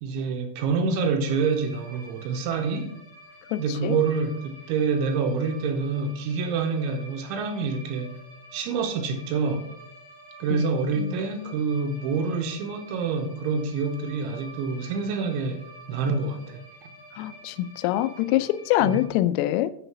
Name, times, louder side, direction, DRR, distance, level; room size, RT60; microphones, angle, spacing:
voice 1, 0.0-3.0 3.6-8.2 8.5-9.7 10.4-16.9 18.8-18.9, right 4 dB, 80° right, 3.1 m, -27 dB
sound 1, 1.2-19.1, right 1 dB, 45° left, 4.8 m, -48 dB
voice 2, 3.5-4.0 10.5-10.6 11.0-11.2 17.2-19.7, left 14 dB, 90° left, 3.2 m, -25 dB
8.2 x 6.8 x 5.8 m
omnidirectional pair, 5.8 m